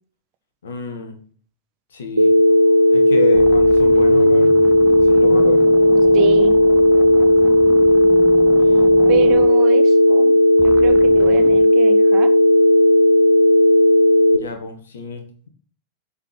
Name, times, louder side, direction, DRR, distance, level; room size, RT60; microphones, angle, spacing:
voice 1, 0.6-1.2 1.9-2.3 2.9-4.5 5.0-5.7 8.6-8.8 14.3-15.5, left 4 dB, 65° left, 5 dB, 1.8 m, -30 dB
Telephone, 2.2-14.4, equal, 80° right, 0.7 m, -13 dB
sound 1, 2.7-2.9 3.3-10.3 10.6-11.7, right 2 dB, 10° right, 1.0 m, -35 dB
voice 2, 6.1-6.6 9.1-12.3, right 13 dB, 40° right, 10 dB, 1.2 m, -27 dB
7.9 x 5.2 x 5.9 m, 0.42 s
figure-of-eight pair, 90°, 0 cm